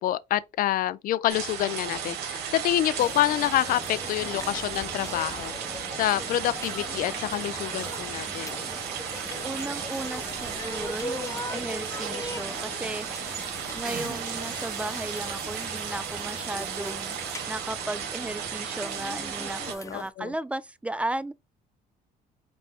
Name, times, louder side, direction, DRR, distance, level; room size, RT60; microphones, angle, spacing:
voice 1, 0.0-5.5 5.9-8.6 19.9-20.3, left 13 dB, 60° left, 0.4 m, -27 dB
sound 1, 1.3-19.7, right 8 dB, 85° right, 1.0 m, -35 dB
sound 2, 3.0-20.1, left 2 dB, 20° left, 0.7 m, -40 dB
voice 2, 9.4-17.2 17.5-21.3, right 1 dB, 10° right, 0.4 m, -35 dB
sound 3, 11.5-12.4 12.8-12.9 13.2-13.5 13.8-17.7 18.3-18.4, right 6 dB, 55° right, 1.2 m, -43 dB
5.3 x 2.1 x 4.3 m
cardioid pair, 90°, 16 cm